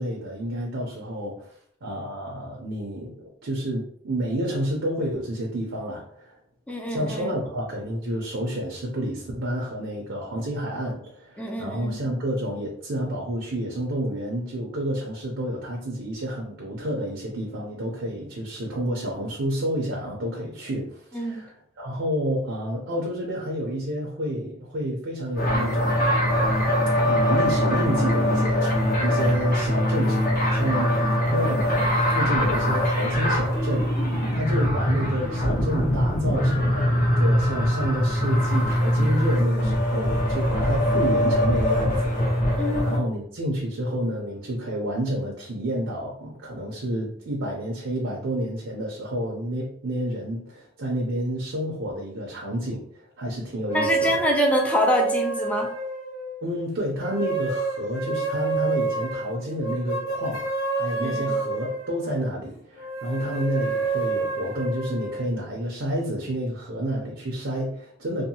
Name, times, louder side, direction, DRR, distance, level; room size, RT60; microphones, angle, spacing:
voice 1, 0.0-1.5 1.8-6.4 6.9-26.1 27.0-42.2 42.5-54.2 56.4-68.2, equal, 65° right, -2 dB, 0.6 m, -30 dB
voice 2, 6.7-7.3 11.4-11.9 21.1-21.4 42.6-42.9 53.7-55.7 61.0-61.3, left 1 dB, 5° left, 1 dB, 0.3 m, -25 dB
sound 1, 25.4-43.0, equal, 45° left, 0.8 m, -22 dB
sound 2, 53.7-56.5 57.0-62.2 62.8-65.2, right 4 dB, 85° left, 0.9 m, -29 dB
2.7 x 2.2 x 2.7 m, 0.65 s
head